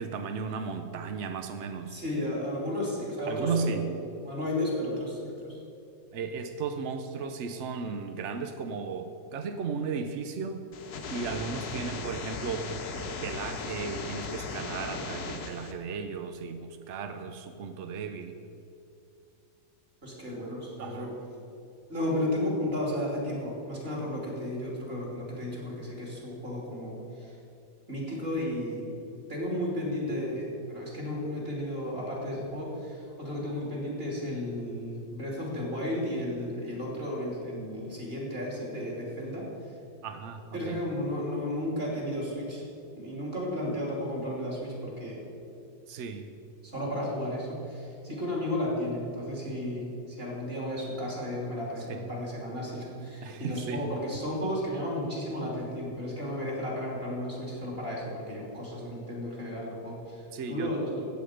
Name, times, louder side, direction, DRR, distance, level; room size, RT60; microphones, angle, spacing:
voice 1, 0.0-1.9 3.3-3.8 6.1-10.7 11.1-18.4 20.8-21.1 40.0-40.8 45.9-46.3 48.1-48.2 51.9-52.0 53.2-53.9 60.3-60.7, right 5 dB, 75° right, 7 dB, 0.6 m, -35 dB
voice 2, 1.9-3.8 4.2-5.6 20.0-21.1 21.9-27.4 27.9-28.9 29.3-39.5 40.5-42.6 43.0-45.2 46.6-61.1, left 1 dB, 30° right, -3 dB, 3.1 m, -33 dB
sound 1, 10.7-15.7, left 4 dB, 60° left, 1.4 m, -37 dB
15.5 x 8.2 x 5.0 m, 2.7 s
omnidirectional pair, 2.0 m